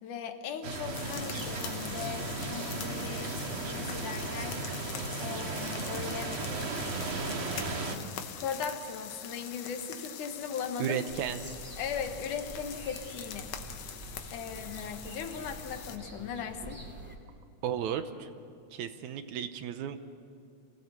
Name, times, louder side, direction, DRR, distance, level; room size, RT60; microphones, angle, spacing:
voice 1, 0.0-4.6 5.2-6.4 8.4-11.0 11.8-13.5 14.3-16.8, left 7 dB, 85° left, 6 dB, 2.9 m, -38 dB
sound 1, 0.6-8.0, right 3 dB, 50° right, 2.5 m, -35 dB
sound 2, 0.9-16.0, left 8 dB, 65° left, 2.1 m, -44 dB
voice 2, 10.8-11.4 17.6-18.3 18.7-20.0, right 8 dB, 75° right, 10 dB, 2.2 m, -34 dB
sound 3, 11.1-17.2, right 1 dB, 5° right, 2.3 m, -46 dB
26.5 x 17.0 x 8.1 m, 2.5 s
omnidirectional pair, 3.5 m